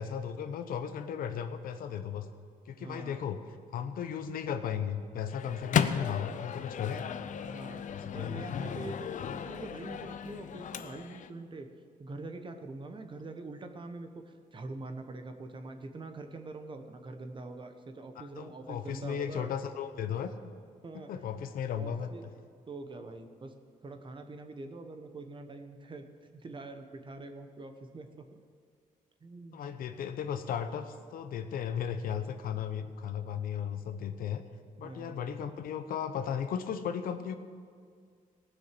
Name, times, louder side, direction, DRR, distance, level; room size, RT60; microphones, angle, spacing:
voice 1, 0.0-2.3 2.7-3.4 3.7-7.1 7.9-8.5 18.4-20.3 21.1-22.1 29.5-34.4 34.8-37.4, left 8 dB, 90° left, 9 dB, 0.9 m, -35 dB
voice 2, 2.8-3.3 7.5-11.7 12.0-19.5 20.8-21.1 21.7-22.4 22.7-23.5 23.8-28.2 29.2-29.8 34.8-35.2, right 3 dB, 35° right, 6 dB, 1.2 m, -44 dB
Microwave oven, 5.3-11.3, left 8 dB, 60° left, 0.6 m, -35 dB
18.5 x 6.4 x 7.7 m, 2.1 s
cardioid pair, 115°, 14 cm